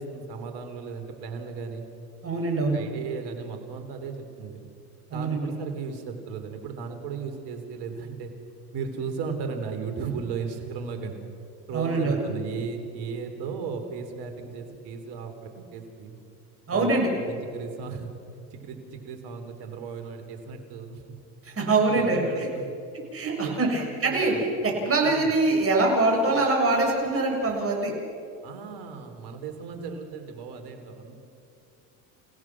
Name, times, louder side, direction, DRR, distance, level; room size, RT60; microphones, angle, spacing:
voice 1, 0.0-1.9 2.7-4.6 5.1-8.3 8.7-11.2 11.7-16.2 16.7-17.0 17.3-21.0 21.6-22.7 23.3-24.6 25.0-25.3 28.4-31.2, right 5 dB, 65° right, 6 dB, 3.8 m, -36 dB
voice 2, 2.2-2.8 5.1-5.5 11.7-12.2 16.7-17.1 21.4-22.3 23.1-27.9, right 3 dB, 30° right, 1 dB, 7.2 m, -24 dB
29.5 x 17.0 x 6.2 m, 2.5 s
supercardioid pair, 85°, 43 cm